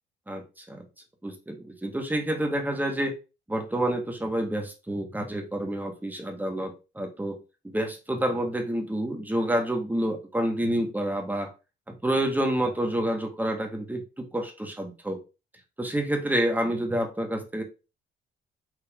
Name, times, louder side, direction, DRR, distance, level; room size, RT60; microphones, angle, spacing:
voice 1, 0.3-0.9 1.2-3.2 3.5-11.5 11.9-15.2 15.8-17.6, right 1 dB, 10° right, 3 dB, 1.3 m, -28 dB
5.0 x 2.9 x 3.4 m, 0.29 s
cardioid pair, 90°, 20 cm